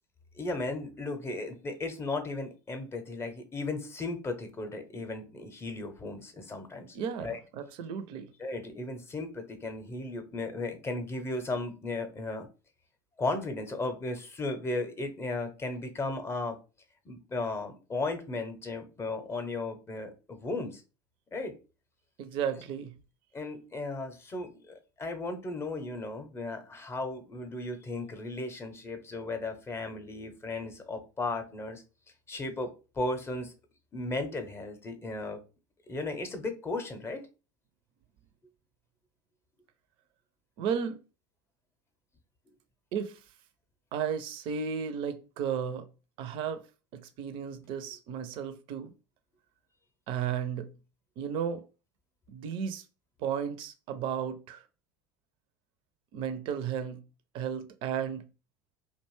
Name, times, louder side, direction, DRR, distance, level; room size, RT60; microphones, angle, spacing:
voice 1, 0.3-7.4 8.4-12.5 13.2-16.6 17.0-20.8 21.3-21.6 23.3-31.8 32.3-32.7 32.9-33.5 33.9-35.4 35.9-37.2, left 2 dB, 25° left, 0.7 m, -35 dB
voice 2, 6.9-7.3 7.5-8.3 22.2-22.9 40.6-41.0 42.9-43.2 43.9-45.9 46.2-46.6 46.9-48.9 50.1-50.7 51.2-51.6 52.3-52.8 53.2-54.6 56.1-57.0 57.3-58.2, right 7 dB, 50° right, 0.5 m, -34 dB
2.5 x 2.2 x 3.1 m
hypercardioid pair, 75°, 11 cm